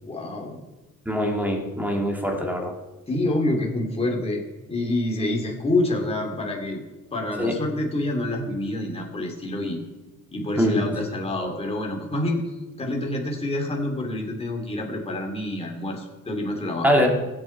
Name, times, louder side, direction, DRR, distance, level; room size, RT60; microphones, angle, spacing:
voice 1, 0.0-0.6 3.1-4.4 4.7-6.8 7.1-9.8 10.3-12.4 12.8-17.1, left 1 dB, 15° left, 0 dB, 2.6 m, -27 dB
voice 2, 1.1-2.7 7.4-7.6 10.6-10.8 16.8-17.1, equal, 5° right, 1 dB, 2.2 m, -23 dB
22.5 x 8.7 x 4.5 m, 1.1 s
cardioid pair, 155°, 34 cm